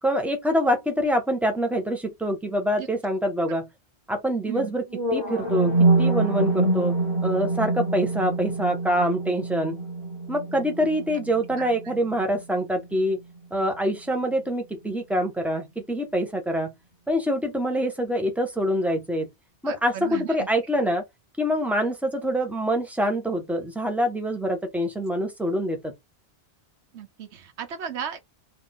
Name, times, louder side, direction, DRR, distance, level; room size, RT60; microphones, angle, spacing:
voice 1, 0.0-3.7 4.1-4.9 5.1-6.9 7.2-9.8 10.3-13.2 13.5-16.7 17.1-19.3 19.6-21.0 21.4-25.9, equal, ahead, 1.1 m, -25 dB
sound 1, 4.9-12.9, right 2 dB, 20° right, 2.0 m, -25 dB
voice 2, 19.7-20.3 26.9-28.2, right 8 dB, 90° right, 1.1 m, -35 dB
4.4 x 2.9 x 3.7 m
omnidirectional pair, 1.1 m